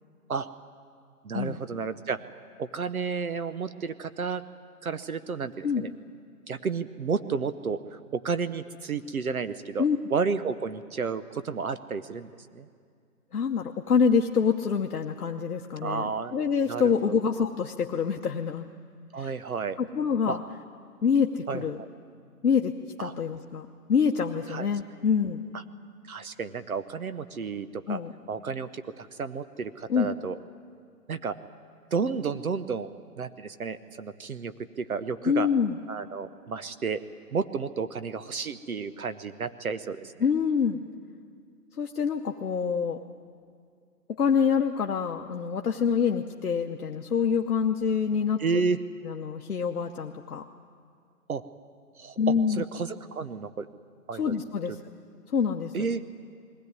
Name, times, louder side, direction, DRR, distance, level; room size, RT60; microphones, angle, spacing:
voice 1, 1.2-2.3 2.6-4.4 4.8-5.9 6.5-9.8 10.1-12.7 15.8-16.3 16.7-17.2 19.1-19.8 20.3-20.4 21.5-21.9 23.0-23.1 24.5-24.7 25.5-25.6 26.0-28.0 28.3-30.4 31.1-31.4 31.9-32.9 33.2-35.5 35.9-37.0 37.3-40.1 48.4-48.8 51.3-51.4 52.0-53.7 54.1-54.4 55.7-56.0, right 5 dB, 65° right, 12 dB, 0.8 m, -31 dB
voice 2, 13.3-18.7 19.2-19.3 19.8-20.4 21.0-21.8 22.4-22.7 23.0-25.4 27.9-28.1 29.9-30.1 35.2-35.8 40.2-40.8 41.8-43.0 44.2-48.4 49.0-50.4 52.2-52.6 54.2-54.8 55.3-55.9, left 6 dB, 65° left, 2 dB, 1.0 m, -26 dB
21.0 x 16.5 x 9.5 m, 2.2 s
hypercardioid pair, 180°, 47 cm